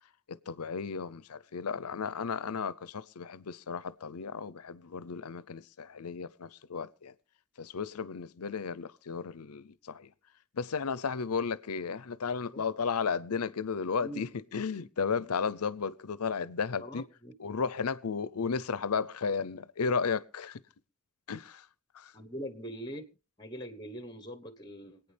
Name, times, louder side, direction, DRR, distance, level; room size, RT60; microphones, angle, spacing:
voice 1, 0.3-7.1 7.6-10.1 10.5-17.0 17.4-20.6 21.3-21.6 21.9-22.1, left 5 dB, 90° left, 0.7 m, -34 dB
voice 2, 16.8-17.3 22.1-23.0 23.4-25.0, equal, 20° left, 1.2 m, -42 dB
26.5 x 9.1 x 3.4 m
head